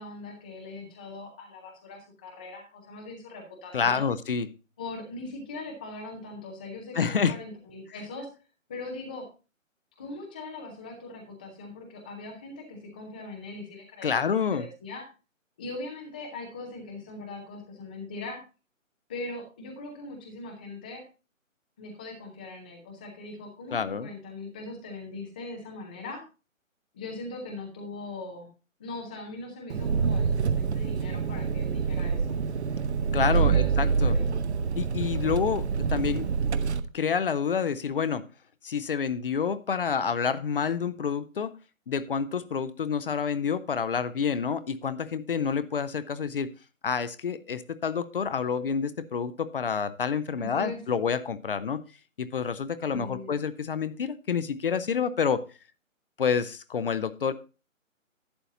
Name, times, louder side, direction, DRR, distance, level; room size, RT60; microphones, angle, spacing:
voice 1, 0.0-4.1 4.8-8.3 8.7-9.3 10.0-15.0 15.6-18.4 19.1-21.0 21.8-26.2 26.9-28.5 28.8-32.4 33.4-34.2 50.4-50.8 52.9-53.4, left 2 dB, 5° left, 1 dB, 0.5 m, -40 dB
voice 2, 3.7-4.5 6.9-7.3 14.0-14.6 23.7-24.1 33.1-34.2 34.8-36.3 36.6-38.2 38.6-41.5 41.9-46.5 46.8-51.8 52.2-55.4 56.2-57.3, left 6 dB, 45° left, 14 dB, 0.6 m, -28 dB
Engine, 29.7-36.8, right 5 dB, 55° right, 0.8 m, -26 dB
11.5 x 8.7 x 2.7 m, 0.32 s
figure-of-eight pair, 145°, 40 cm